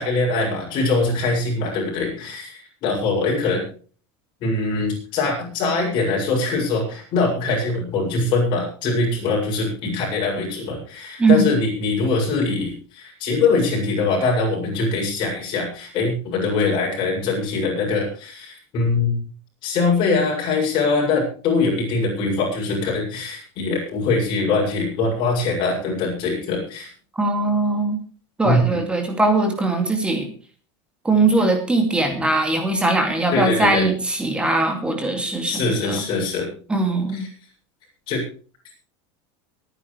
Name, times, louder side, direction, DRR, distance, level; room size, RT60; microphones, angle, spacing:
voice 1, 0.0-3.6 4.4-19.2 19.6-26.9 28.4-28.6 33.3-33.9 35.4-36.5 38.1-38.2, left 3 dB, 35° left, -1 dB, 7.4 m, -22 dB
voice 2, 11.2-11.6 27.1-28.0 28.4-30.3 31.0-36.0 36.7-37.3, right 2 dB, 5° right, 4 dB, 2.5 m, -20 dB
23.5 x 10.0 x 3.4 m, 0.40 s
supercardioid pair, 180°, 14 cm